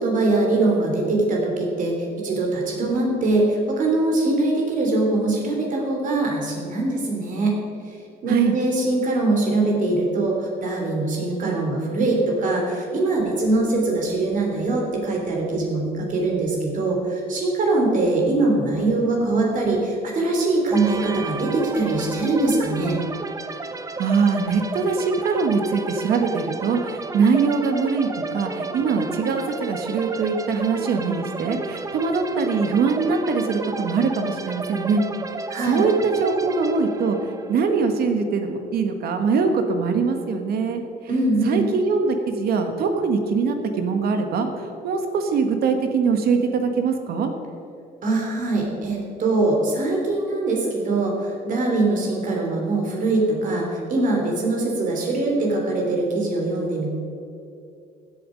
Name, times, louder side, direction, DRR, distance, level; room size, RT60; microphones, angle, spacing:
voice 1, 0.0-1.9 2.2-7.6 7.9-8.0 8.2-23.0 35.5-35.8 41.1-41.6 48.0-56.9, right 2 dB, 50° right, 0 dB, 3.4 m, -22 dB
sound 1, 20.7-38.3, right 3 dB, 20° right, 0.8 m, -33 dB
voice 2, 24.0-35.0 35.6-40.8 41.4-47.3, right 5 dB, 65° right, 6 dB, 1.6 m, -22 dB
16.0 x 7.9 x 5.2 m, 2.6 s
cardioid pair, 110°, 17 cm